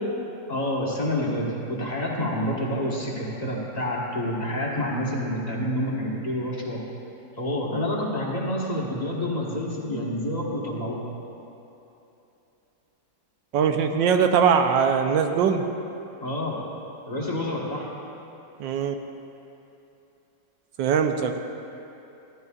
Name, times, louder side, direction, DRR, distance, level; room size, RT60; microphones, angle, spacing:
voice 1, 0.5-6.8 7.4-11.1 16.2-16.6 17.1-17.9, left 1 dB, 25° left, -5 dB, 1.4 m, -28 dB
voice 2, 13.5-15.7 18.6-18.9 20.8-21.4, right 7 dB, 90° right, 6 dB, 1.4 m, -21 dB
15.0 x 12.0 x 2.4 m, 2.9 s
omnidirectional pair, 2.0 m